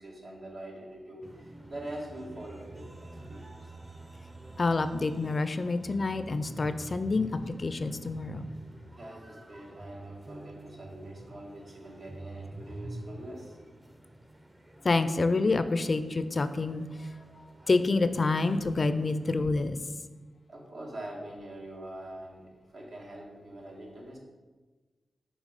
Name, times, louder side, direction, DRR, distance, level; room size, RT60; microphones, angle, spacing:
voice 1, 0.0-3.7 8.9-13.6 20.5-24.2, right 1 dB, 75° right, -2 dB, 1.3 m, -44 dB
sound 1, 1.2-19.4, right 2 dB, 25° right, 0.6 m, -47 dB
voice 2, 4.6-8.5 14.8-17.1 17.7-19.8, left 3 dB, 55° left, 11 dB, 0.4 m, -28 dB
6.5 x 3.0 x 5.0 m, 1.3 s
cardioid pair, 45°, 0 cm